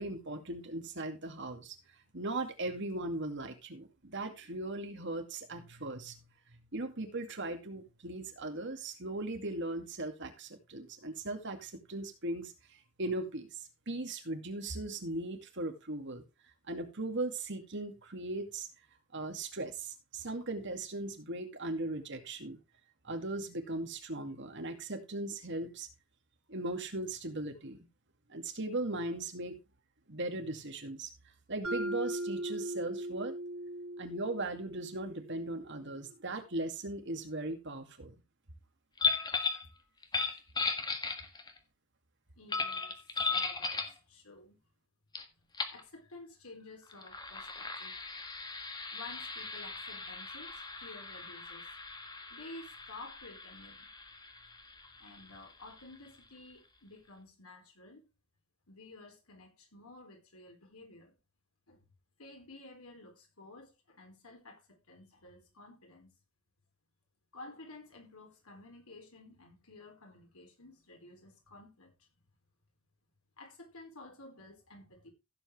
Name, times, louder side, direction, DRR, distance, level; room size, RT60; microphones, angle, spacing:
voice 1, 0.0-1.8 2.1-6.2 6.5-12.5 13.0-16.2 16.7-18.7 19.1-22.6 23.0-25.9 26.5-27.9 28.3-29.6 30.1-31.1 31.5-33.4 34.0-38.1, right 2 dB, 55° right, 2.3 m, -38 dB
Mallet percussion, 31.6-35.7, right 1 dB, 80° right, 3.6 m, -39 dB
sound 1, 39.0-39.7 40.0-41.6 42.5-44.0 45.1-45.2 45.5-45.8 46.9-56.2, left 4 dB, 20° left, 1.6 m, -37 dB
voice 2, 42.3-44.6 45.7-48.2 48.9-51.7 52.3-53.9 55.0-58.0 58.7-61.1 61.7-61.8 62.2-66.1 67.3-72.1 73.4-75.1, left 2 dB, 85° left, 4.3 m, -52 dB
15.5 x 7.7 x 3.3 m
head